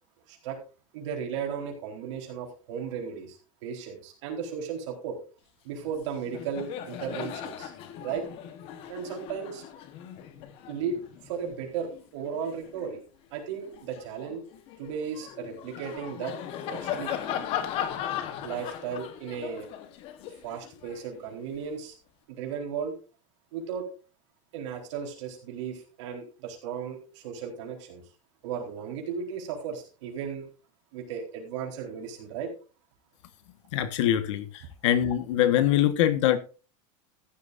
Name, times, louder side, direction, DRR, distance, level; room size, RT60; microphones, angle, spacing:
voice 1, 0.3-0.6 0.9-5.2 5.6-7.7 8.0-8.3 8.9-9.6 10.7-13.0 13.3-14.4 14.8-16.3 16.7-17.1 18.4-19.7 20.4-22.0 22.3-22.9 23.5-23.9 24.5-28.0 28.4-30.5 30.9-32.5, right 7 dB, 65° right, 4.2 m, -35 dB
Laughter, 5.8-6.0 6.3-13.0 13.5-21.7, left 9 dB, 35° left, 1.2 m, -38 dB
voice 2, 33.7-36.4, left 11 dB, 65° left, 1.4 m, -23 dB
14.5 x 12.0 x 2.6 m
supercardioid pair, 180°, 17 cm